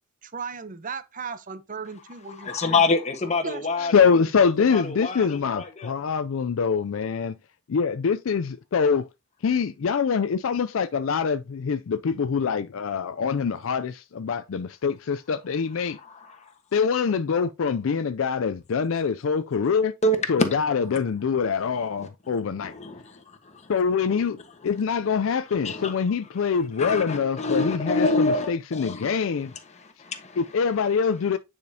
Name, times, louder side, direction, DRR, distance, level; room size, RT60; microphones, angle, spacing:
voice 1, 0.2-2.8 3.4-4.3, right 5 dB, 40° right, 0.7 m, -37 dB
voice 2, 2.4-4.1 4.7-5.9 16.0-16.4 20.0-20.6 20.9-21.0 22.6-23.4 24.1-24.3 25.6-25.9 26.8-29.1 29.7-30.4, left 2 dB, 35° left, 1.2 m, -26 dB
voice 3, 3.8-7.4 7.7-9.1 9.4-16.0 16.7-20.0 20.3-22.7 23.7-29.5 30.4-31.4, left 6 dB, 65° left, 0.4 m, -24 dB
9.4 x 5.1 x 2.8 m
head